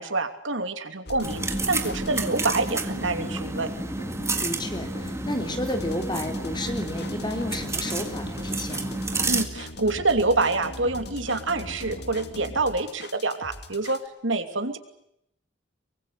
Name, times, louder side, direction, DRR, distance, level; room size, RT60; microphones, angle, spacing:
voice 1, 0.0-3.7 9.3-14.8, right 3 dB, 85° right, 8 dB, 2.8 m, -26 dB
sound 1, 1.1-14.1, left 1 dB, 60° left, 2.5 m, -39 dB
sound 2, 1.2-9.4, right 2 dB, 15° right, 2.0 m, -30 dB
voice 2, 4.4-9.0, left 1 dB, 25° left, 5 dB, 3.7 m, -32 dB
24.0 x 23.5 x 8.2 m, 0.76 s
head